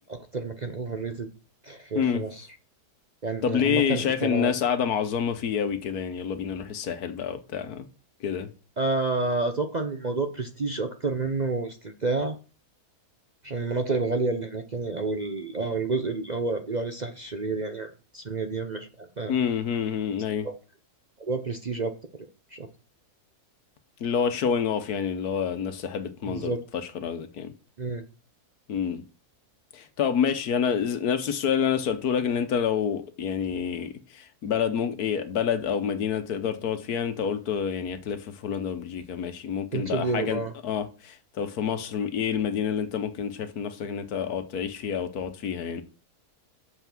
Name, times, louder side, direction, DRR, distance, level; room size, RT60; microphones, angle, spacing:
voice 1, 0.1-1.3 1.6-2.5 3.2-4.5 8.8-12.4 13.4-19.3 21.2-21.9 22.5-22.7 26.3-26.6 27.8-28.0 39.7-40.5, right 3 dB, 40° right, 0.6 m, -29 dB
voice 2, 1.9-2.3 3.4-7.9 8.2-8.5 19.3-20.5 24.0-27.5 28.7-29.0 29.7-45.8, left 7 dB, 75° left, 1.5 m, -28 dB
6.8 x 5.7 x 6.0 m
omnidirectional pair, 1.6 m